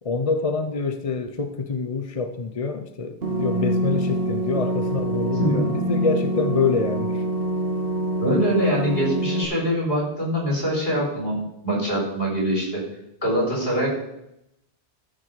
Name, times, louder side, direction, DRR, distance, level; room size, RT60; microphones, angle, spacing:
voice 1, 0.0-7.2, left 4 dB, 35° left, 7 dB, 0.7 m, -26 dB
sound 1, 3.2-9.4, right 1 dB, 65° right, 1.6 m, -25 dB
voice 2, 5.4-5.7 8.2-12.8 13.2-13.9, equal, 60° left, -2 dB, 4.7 m, -23 dB
13.5 x 6.3 x 4.9 m, 0.82 s
omnidirectional pair, 1.1 m